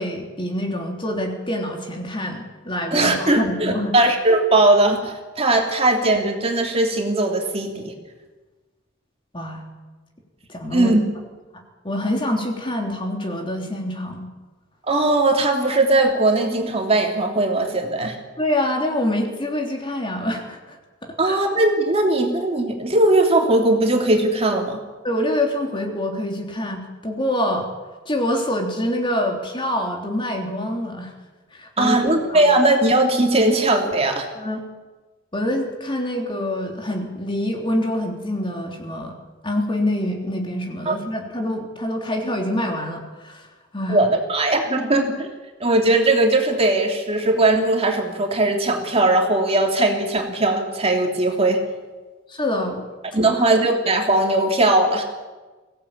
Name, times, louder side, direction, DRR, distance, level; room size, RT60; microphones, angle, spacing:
voice 1, 0.0-4.0 9.3-9.7 10.5-11.0 11.5-14.3 18.4-21.4 25.0-27.7 28.1-31.1 31.5-32.4 34.4-34.6 35.3-39.2 39.4-43.5 43.7-44.0 52.3-52.8 53.3-53.4, left 1 dB, 25° left, 2 dB, 3.4 m, -26 dB
voice 2, 2.9-7.9 10.7-11.0 14.9-18.2 21.2-24.8 31.8-34.3 40.9-41.0 43.9-45.3 45.6-51.6 53.1-55.0, right 2 dB, 30° right, 2 dB, 3.0 m, -19 dB
23.5 x 17.0 x 8.7 m, 1.3 s
head